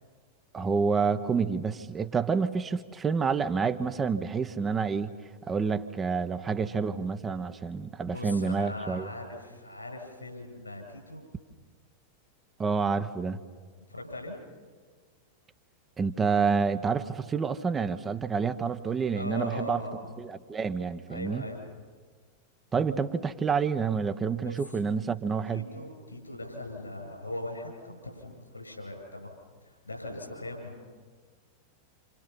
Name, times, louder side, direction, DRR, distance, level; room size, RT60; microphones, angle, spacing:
voice 1, 0.5-5.1 5.5-9.1 12.6-13.4 16.0-19.8 20.2-21.5 22.7-25.6, right 5 dB, 20° right, 9 dB, 1.1 m, -28 dB
voice 2, 8.1-11.2 13.9-14.4 19.1-20.1 21.1-21.8 24.4-24.8 25.5-30.8, left 2 dB, 80° left, 2 dB, 7.9 m, -40 dB
28.5 x 28.0 x 5.8 m, 1.5 s
figure-of-eight pair, 90°, 0 cm